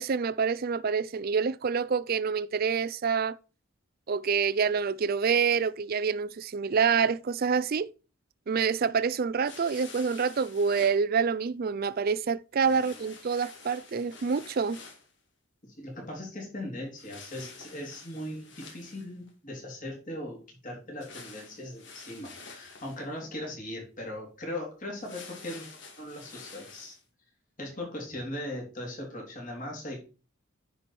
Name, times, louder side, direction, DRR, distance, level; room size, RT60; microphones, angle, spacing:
voice 1, 0.0-3.4 4.1-7.9 8.5-14.8, right 6 dB, 45° right, 0.4 m, -27 dB
sound 1, 9.4-11.0 12.6-15.1 17.0-19.3 21.0-23.0 24.9-27.0, left 4 dB, 55° left, 2.2 m, -48 dB
voice 2, 12.6-13.1 15.6-25.7 26.0-27.0 27.6-30.0, left 1 dB, 40° left, 3.4 m, -39 dB
9.7 x 4.8 x 4.2 m
head